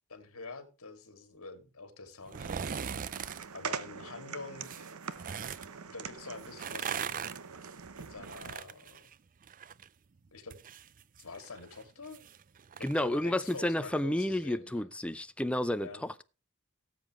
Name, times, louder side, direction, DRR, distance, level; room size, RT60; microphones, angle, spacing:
voice 1, 0.1-4.9 5.9-6.9 8.0-9.1 10.3-10.6 11.2-12.2 12.8-14.9 15.8-16.0, left 3 dB, 65° left, 2.5 m, -46 dB
sound 1, 2.2-3.5 4.6-5.7 6.4-9.9 10.2-13.6 14.0-14.1, right 7 dB, 40° right, 0.5 m, -40 dB
sound 2, 2.3-8.6, right 6 dB, 75° right, 0.9 m, -43 dB
voice 2, 12.8-16.2, left 1 dB, 5° left, 0.6 m, -31 dB
18.0 x 7.6 x 3.1 m
head